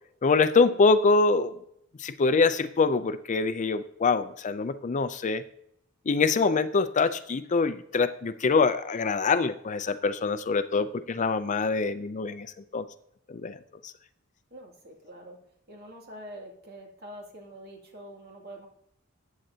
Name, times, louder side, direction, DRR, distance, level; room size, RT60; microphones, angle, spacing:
voice 1, 0.2-1.5 2.0-5.4 6.1-12.5 12.7-12.8 13.3-13.9, left 4 dB, 35° left, 12 dB, 0.4 m, -24 dB
voice 2, 14.5-15.4 15.7-18.7, equal, 50° right, 0 dB, 2.5 m, -45 dB
14.0 x 8.9 x 2.8 m, 0.75 s
head